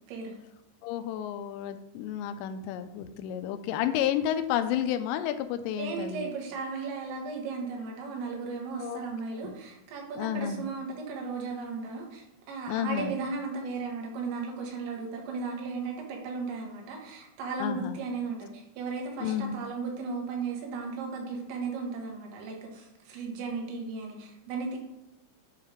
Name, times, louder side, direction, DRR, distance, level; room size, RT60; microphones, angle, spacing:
voice 1, 0.8-6.3 8.8-9.0 9.3-9.5 10.2-10.7 12.7-13.1 17.6-18.0 19.2-19.5, left 10 dB, 85° left, 9 dB, 2.8 m, -31 dB
voice 2, 5.8-24.8, right 4 dB, 80° right, 0 dB, 3.8 m, -36 dB
9.6 x 3.2 x 5.0 m, 0.95 s
omnidirectional pair, 5.2 m